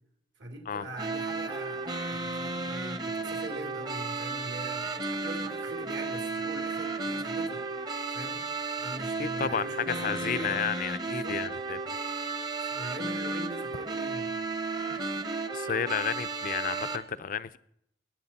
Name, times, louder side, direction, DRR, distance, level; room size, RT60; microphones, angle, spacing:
voice 1, 0.4-7.7 8.1-8.5 8.8-10.7 11.1-11.4 12.6-14.3, right 1 dB, 70° right, 2.5 m, -42 dB
sound 1, 1.0-17.0, right 3 dB, 25° right, 0.9 m, -34 dB
voice 2, 9.2-12.0 14.8-15.0 15.5-17.6, left 7 dB, 50° left, 0.5 m, -32 dB
21.0 x 8.0 x 4.1 m
head